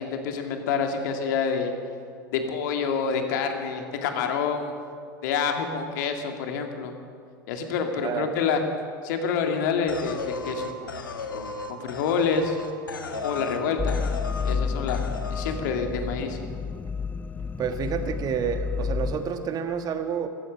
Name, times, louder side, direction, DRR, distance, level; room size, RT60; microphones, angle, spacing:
voice 1, 0.0-1.7 2.3-4.7 5.2-6.9 7.5-8.6 9.0-10.2 10.4-11.0 11.3-12.6 13.2-14.1 14.4-15.0 15.3-16.4, left 6 dB, 65° left, 5 dB, 2.1 m, -27 dB
sound 1, 9.9-13.6 13.9-14.6 14.9-15.6, left 4 dB, 85° left, 1.3 m, -35 dB
voice 2, 13.1-13.7 15.6-15.9 17.6-20.3, right 7 dB, 35° right, 8 dB, 1.5 m, -30 dB
sound 2, 13.8-19.2, left 5 dB, 15° left, 0.6 m, -30 dB
15.0 x 14.0 x 6.7 m, 2.3 s
figure-of-eight pair, 85°, 11 cm